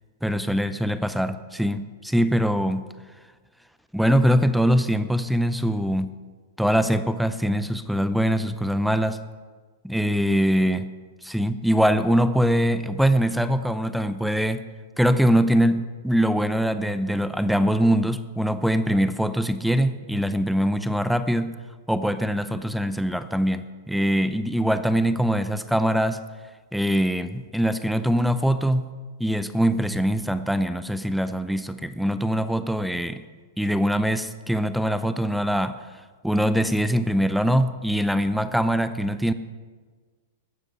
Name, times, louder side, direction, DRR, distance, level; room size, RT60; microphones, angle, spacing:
voice 1, 0.2-2.9 3.9-6.2 6.6-9.2 9.8-10.9 11.2-14.6 15.0-21.6 21.9-26.2 26.7-28.9 29.2-33.2 33.6-35.8 36.2-39.3, equal, ahead, 12 dB, 0.6 m, -23 dB
15.0 x 9.8 x 6.4 m, 1.5 s
hypercardioid pair, 125°, 0 cm